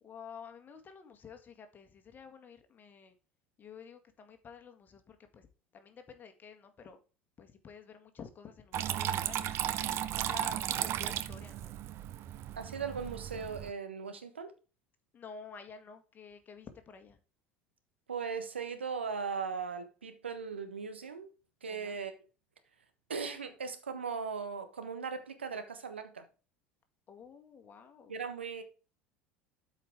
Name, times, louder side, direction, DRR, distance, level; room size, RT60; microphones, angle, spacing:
voice 1, 0.0-3.2 3.6-5.5 5.7-7.0 7.4-9.5 10.1-11.7 15.1-17.2 21.7-22.0 27.1-28.1, left 6 dB, 30° left, 1.8 m, -51 dB
Water tap faucet / Trickle dribble, 8.7-13.7, right 11 dB, 45° right, 0.7 m, -35 dB
voice 2, 12.6-14.5 18.1-21.3 21.6-22.1 23.1-26.2 28.1-28.6, right 5 dB, 80° right, 1.3 m, -38 dB
12.5 x 4.9 x 3.5 m
figure-of-eight pair, 70°, 6 cm